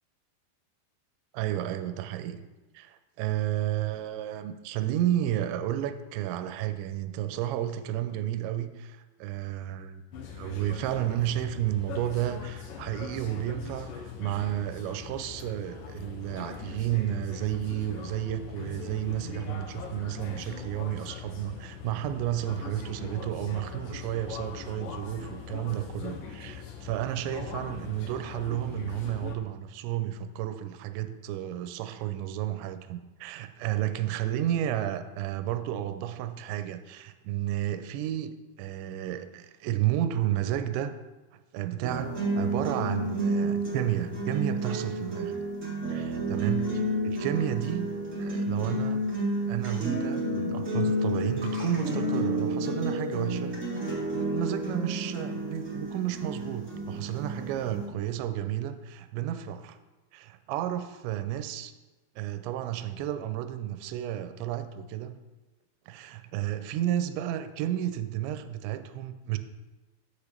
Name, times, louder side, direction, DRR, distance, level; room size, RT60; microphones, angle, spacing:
voice 1, 1.3-2.4 2.7-10.1 10.3-40.9 41.5-45.4 45.9-47.9 48.2-49.0 49.5-53.5 54.1-59.8 60.1-61.7 62.2-65.2 65.9-69.4, right 12 dB, 85° right, 9 dB, 2.9 m, -32 dB
sound 1, 10.1-29.4, left 7 dB, 90° left, 1.9 m, -41 dB
sound 2, 41.8-57.8, right 1 dB, 40° right, 1.1 m, -30 dB
6.9 x 5.1 x 6.6 m, 1.2 s
omnidirectional pair, 5.1 m